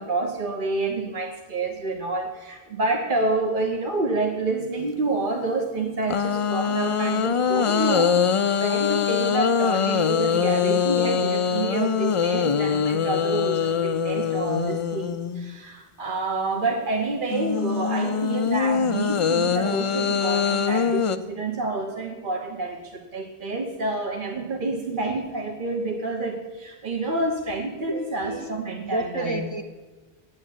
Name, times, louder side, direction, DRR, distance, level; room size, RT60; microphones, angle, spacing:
voice 1, 0.0-29.4, right 2 dB, 55° right, 2 dB, 1.2 m, -28 dB
sound 1, 6.1-15.6 17.3-21.2, left 7 dB, 45° left, 0.4 m, -23 dB
voice 2, 27.9-28.5 28.9-29.6, right 1 dB, 30° right, 2 dB, 0.7 m, -30 dB
9.3 x 8.7 x 8.2 m, 1.3 s
omnidirectional pair, 1.0 m